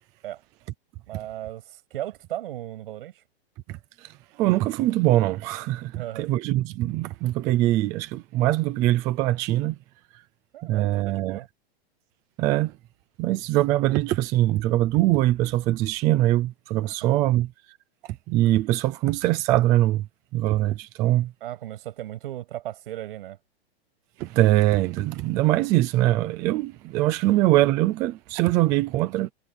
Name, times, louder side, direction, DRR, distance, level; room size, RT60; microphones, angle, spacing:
voice 1, 1.1-3.2 5.9-6.3 10.5-11.5 16.8-17.4 21.4-23.4, right 13 dB, 60° right, 7.2 m, -36 dB
voice 2, 3.7-9.8 10.6-11.4 12.4-12.7 13.2-17.5 18.3-20.1 20.3-21.3 24.2-29.3, right 15 dB, 10° right, 0.4 m, -23 dB
supercardioid pair, 170°, 31 cm